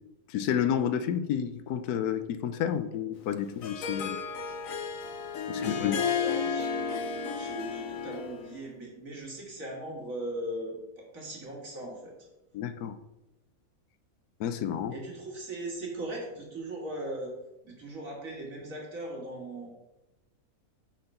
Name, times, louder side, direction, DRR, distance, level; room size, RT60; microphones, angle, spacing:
voice 1, 0.3-4.2 5.5-6.0 12.5-13.0 14.4-14.9, left 9 dB, 90° left, 1.2 m, -30 dB
Harp, 3.2-8.5, left 6 dB, 65° left, 1.2 m, -33 dB
voice 2, 5.5-12.3 14.9-17.3 17.6-19.7, right 1 dB, 60° right, 2.5 m, -39 dB
5.7 x 5.0 x 6.6 m
omnidirectional pair, 1.6 m